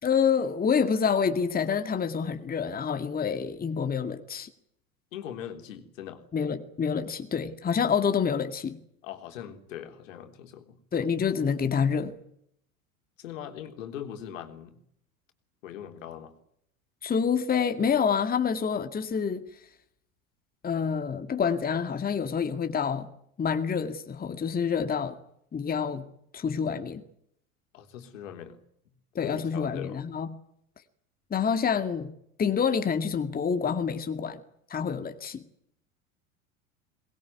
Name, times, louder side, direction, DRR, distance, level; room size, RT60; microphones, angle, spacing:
voice 1, 0.0-4.5 6.3-8.8 10.9-12.2 17.0-19.5 20.6-23.1 23.4-25.2 25.5-26.1 26.3-27.0 29.1-30.3 31.3-32.1 32.4-34.4 34.7-35.4, left 6 dB, 20° left, 8 dB, 2.1 m, -27 dB
voice 2, 5.1-6.2 9.0-10.8 13.2-14.8 15.6-16.3 27.7-28.6 29.2-30.0, left 10 dB, 65° left, 6 dB, 3.5 m, -40 dB
22.5 x 21.0 x 9.4 m, 0.71 s
figure-of-eight pair, 80°, 42 cm